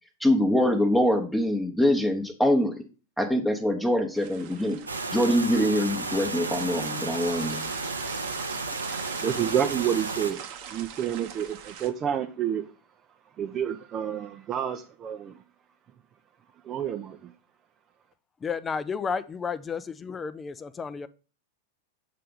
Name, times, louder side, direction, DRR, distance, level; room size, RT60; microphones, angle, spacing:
voice 1, 0.2-2.7 3.2-4.8 5.1-7.7, left 1 dB, 5° left, 0.9 m, -24 dB
sound 1, 4.1-11.9, right 9 dB, 50° right, 0.9 m, -43 dB
sound 2, 4.9-10.3, right 3 dB, 85° right, 0.7 m, -33 dB
voice 2, 8.7-12.7 13.4-15.4 16.6-17.3, right 9 dB, 30° right, 0.5 m, -29 dB
voice 3, 18.4-21.1, left 5 dB, 20° left, 0.5 m, -32 dB
7.6 x 3.3 x 5.3 m
figure-of-eight pair, 90°, 0 cm